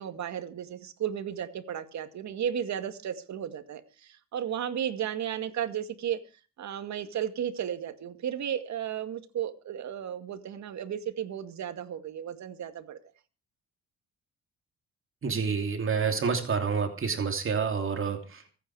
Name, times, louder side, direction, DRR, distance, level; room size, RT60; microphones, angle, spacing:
voice 1, 0.0-6.2 6.6-13.0, right 9 dB, 65° right, 9 dB, 2.2 m, -34 dB
voice 2, 15.2-18.4, right 5 dB, 45° right, 5 dB, 2.9 m, -28 dB
24.0 x 9.4 x 4.9 m, 0.35 s
cardioid pair, 90°, 30 cm